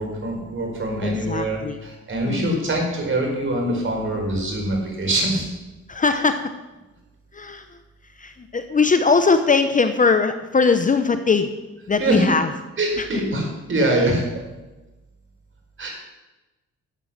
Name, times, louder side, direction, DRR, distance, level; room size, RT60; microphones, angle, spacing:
voice 1, 0.0-5.5 12.0-12.2 12.8-14.2 15.8-15.9, right 1 dB, 40° right, 0 dB, 4.8 m, -24 dB
voice 2, 1.0-1.8 2.2-2.6 5.9-6.5 7.3-7.6 8.2-11.5 11.9-12.5 13.0-13.1, left 4 dB, 25° left, 8 dB, 0.8 m, -20 dB
11.5 x 8.0 x 7.3 m, 1.1 s
cardioid pair, 90°, 30 cm